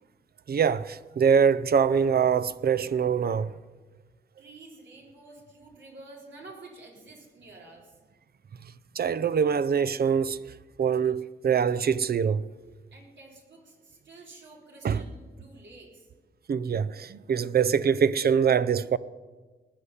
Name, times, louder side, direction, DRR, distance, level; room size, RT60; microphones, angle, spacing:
voice 1, 0.5-3.5 9.0-10.4 10.8-12.5 14.8-15.0 16.5-19.0, right 7 dB, 60° right, 0.6 m, -24 dB
voice 2, 4.4-8.0 12.9-16.1, right 2 dB, 85° right, 4.0 m, -49 dB
19.0 x 6.6 x 9.8 m
cardioid pair, 80°, 18 cm